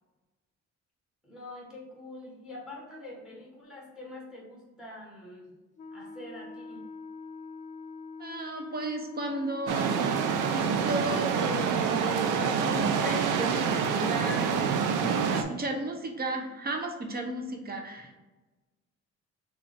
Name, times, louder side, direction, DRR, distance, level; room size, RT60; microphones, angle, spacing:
voice 1, 1.2-5.5 5.9-6.8, left 2 dB, ahead, -2 dB, 1.2 m, -45 dB
Wind instrument woodwind instrument, 5.8-10.6, left 4 dB, 25° left, 0.4 m, -44 dB
voice 2, 8.2-10.0 10.5-14.6 15.0-18.2, right 2 dB, 30° right, 4 dB, 0.8 m, -34 dB
sound 1, 9.7-15.4, right 6 dB, 85° right, 0.5 m, -27 dB
3.5 x 3.2 x 4.3 m, 1.2 s
cardioid pair, 90°, 30 cm